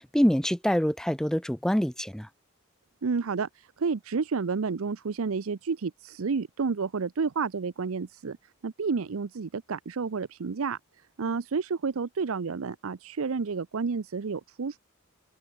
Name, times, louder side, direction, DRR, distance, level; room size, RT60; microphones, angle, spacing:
voice 1, 0.0-2.3, equal, 5° left, 0.5 m, -25 dB
voice 2, 3.0-8.4 8.6-10.8 11.2-14.8, right 5 dB, 80° right, 0.6 m, -30 dB
head